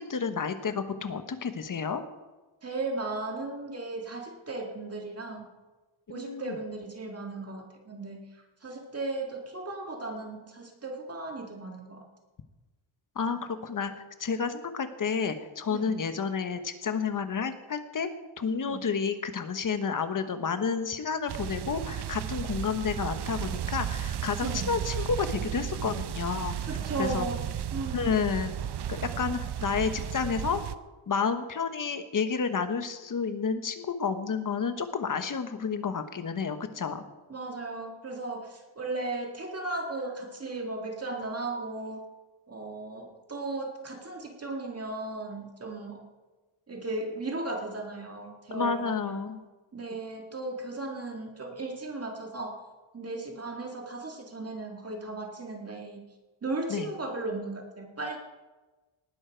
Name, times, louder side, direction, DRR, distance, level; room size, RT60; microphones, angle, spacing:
voice 1, 0.0-2.0 6.1-6.5 13.1-13.9 14.2-18.1 18.4-26.7 27.0-27.3 27.9-28.5 28.9-30.6 31.1-37.0 48.5-49.4 56.7-56.9, left 5 dB, 40° left, 9 dB, 1.2 m, -30 dB
voice 2, 2.6-5.5 6.1-12.1 15.7-16.0 18.6-18.9 24.4-24.8 26.7-28.2 37.3-42.0 42.5-46.1 46.7-49.4 49.7-52.7 52.9-56.1 56.4-58.2, right 2 dB, 30° right, 2 dB, 1.9 m, -36 dB
sound 1, 21.3-30.7, right 10 dB, 55° right, 0.7 m, -34 dB
19.0 x 12.0 x 4.6 m, 1.2 s
wide cardioid pair, 170°, 49 cm